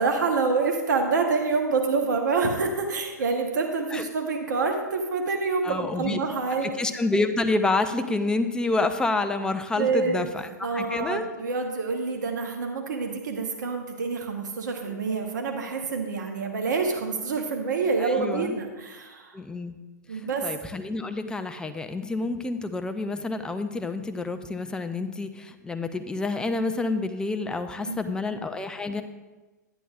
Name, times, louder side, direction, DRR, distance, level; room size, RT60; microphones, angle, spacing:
voice 1, 0.0-6.7 9.8-19.4 20.1-20.5 27.9-28.0, right 4 dB, 70° right, 3 dB, 1.1 m, -27 dB
voice 2, 5.6-6.2 6.6-11.3 14.8-15.0 18.0-18.6 19.3-19.8 20.1-29.0, left 3 dB, 10° left, 7 dB, 0.5 m, -28 dB
11.0 x 9.9 x 2.4 m, 1.2 s
hypercardioid pair, 115°, 10 cm